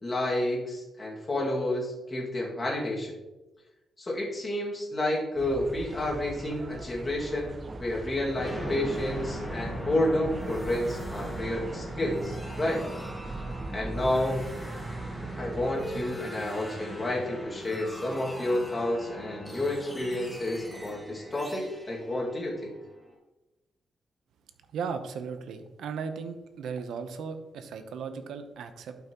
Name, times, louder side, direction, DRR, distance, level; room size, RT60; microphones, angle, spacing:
voice 1, 0.0-3.2 4.0-12.8 13.7-14.4 15.4-22.7, left 1 dB, 25° left, -3 dB, 2.1 m, -30 dB
sound 1, 5.4-16.0, right 2 dB, 25° right, 0.6 m, -40 dB
sound 2, 8.4-23.1, equal, ahead, 1.5 m, -40 dB
voice 2, 24.7-29.0, right 6 dB, 85° right, 8 dB, 0.8 m, -36 dB
12.0 x 5.8 x 3.0 m, 1.1 s
cardioid pair, 135°, 0 cm